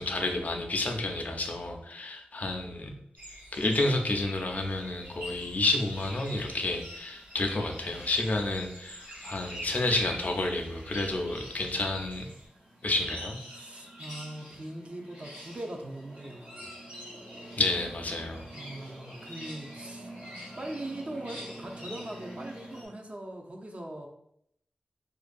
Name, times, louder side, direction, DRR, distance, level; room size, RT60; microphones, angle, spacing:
voice 1, 0.0-3.0 3.5-12.3 12.8-13.4 17.6-18.5, left 2 dB, 55° left, 3 dB, 0.4 m, -30 dB
sound 1, 3.2-12.5, equal, 60° right, 0.8 m, -50 dB
sound 2, 5.0-22.9, equal, 85° right, 1.3 m, -45 dB
voice 2, 13.5-16.6 18.5-20.1 20.6-24.1, right 1 dB, 40° right, 1 dB, 0.5 m, -41 dB
2.5 x 2.2 x 2.5 m, 0.75 s
cardioid pair, 40°, 3 cm